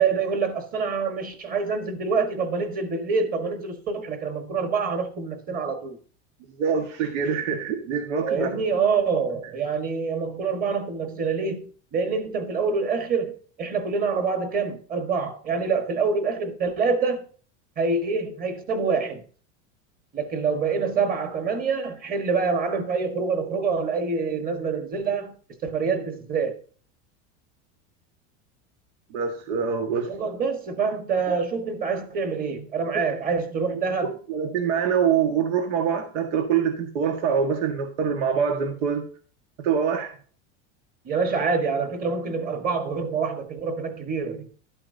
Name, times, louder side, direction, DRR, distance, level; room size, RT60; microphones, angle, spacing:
voice 1, 0.0-6.0 8.2-17.2 17.8-19.2 20.1-25.3 25.6-26.6 30.1-34.1 41.0-44.5, right 5 dB, 25° right, 1.5 m, -26 dB
voice 2, 6.6-8.5 29.1-30.1 34.3-39.0 39.6-40.1, right 7 dB, 90° right, 1.7 m, -24 dB
12.0 x 8.6 x 2.7 m
supercardioid pair, 165°, 35 cm